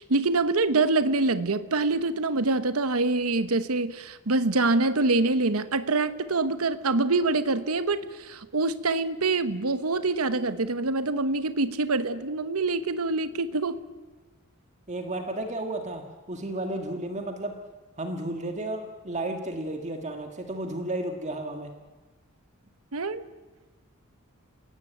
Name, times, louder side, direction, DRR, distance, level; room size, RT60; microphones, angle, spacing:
voice 1, 0.0-13.8 22.9-23.2, right 3 dB, 80° right, 12 dB, 1.0 m, -25 dB
voice 2, 14.9-17.6 18.0-21.7, right 1 dB, 35° right, 4 dB, 1.8 m, -33 dB
29.5 x 17.0 x 9.2 m, 1.3 s
head